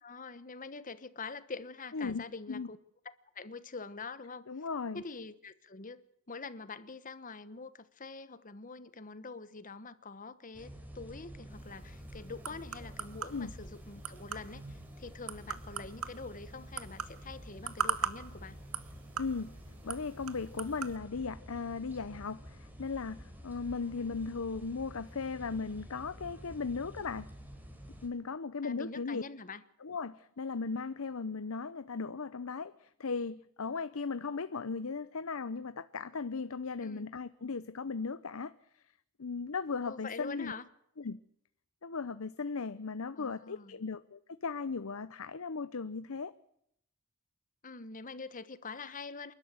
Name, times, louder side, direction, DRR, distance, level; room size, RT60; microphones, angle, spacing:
voice 1, 0.0-2.8 3.3-4.4 4.9-6.0 6.3-18.6 24.0-24.2 28.6-29.6 36.8-37.1 39.8-40.7 43.1-43.8 47.6-49.3, left 4 dB, 40° left, 1.2 m, -45 dB
voice 2, 1.9-2.2 2.5-2.7 4.5-5.0 13.3-13.5 19.2-19.5 19.8-27.3 28.0-29.2 29.8-38.5 39.2-40.5 41.0-41.2 41.8-46.3, left 4 dB, 75° left, 0.8 m, -37 dB
sound 1, 10.5-28.1, equal, 10° right, 4.0 m, -50 dB
sound 2, 11.5-21.0, right 7 dB, 85° right, 1.5 m, -41 dB
28.5 x 12.5 x 7.7 m
head